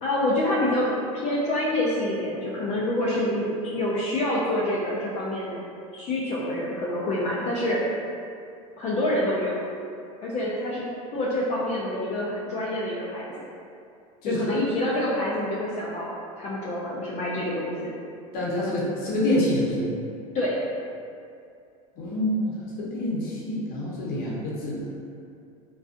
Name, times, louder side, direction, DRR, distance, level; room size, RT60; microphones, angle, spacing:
voice 1, 0.0-5.6 5.9-7.8 8.8-9.5 10.2-10.9 11.1-13.3 14.2-17.9 20.3-20.5, left 1 dB, 35° left, -6 dB, 0.4 m, -27 dB
voice 2, 18.3-19.8 22.0-24.9, left 1 dB, 55° left, -6 dB, 0.8 m, -27 dB
2.5 x 2.3 x 2.4 m, 2.5 s
hypercardioid pair, 95°, 19 cm